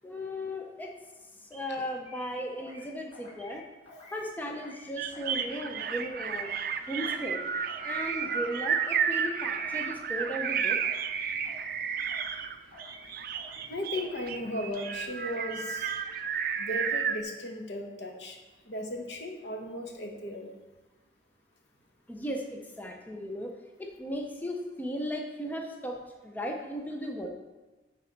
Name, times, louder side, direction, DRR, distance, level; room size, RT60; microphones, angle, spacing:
voice 1, 0.0-0.9 1.4-3.6 4.1-6.5 6.9-7.4 7.8-10.8 22.1-23.5 23.8-27.3, equal, 10° left, 1 dB, 0.6 m, -36 dB
sound 1, 1.5-1.8 2.0-2.9 3.1-3.6 3.9-4.2 4.5-4.8 5.1-5.5 5.7-6.1 6.4-6.7 7.0-7.4 7.6-8.0 8.3-8.6 8.9-9.3 9.5-9.9 10.2-10.5 10.8-11.2 11.4-11.8 12.1-12.4 12.7-13.1 13.3-13.7 14.0-14.3 14.6-15.0 15.2-15.6, left 1 dB, 30° left, 2.7 m, -50 dB
sound 2, 5.0-17.2, right 7 dB, 55° right, 0.4 m, -32 dB
voice 2, 13.7-15.9 16.6-18.4 18.7-20.5, left 1 dB, 75° left, 2 dB, 1.2 m, -36 dB
8.6 x 4.2 x 5.1 m, 1.2 s
head